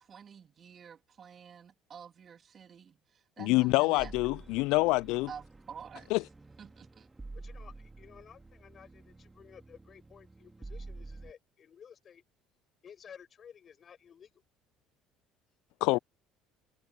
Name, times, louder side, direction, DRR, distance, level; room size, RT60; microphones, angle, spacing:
voice 1, 0.0-4.1 5.3-6.1 6.6-7.1, right 7 dB, 40° right, 2.9 m, -49 dB
voice 2, 3.4-5.3 6.1-6.2 15.8-16.0, left 23 dB, 70° left, 0.4 m, -26 dB
sound 1, 4.0-11.3, right 2 dB, 15° right, 2.9 m, -49 dB
voice 3, 7.3-12.2 12.8-14.4, left 8 dB, 40° left, 5.9 m, -54 dB
hypercardioid pair, 65°, 0 cm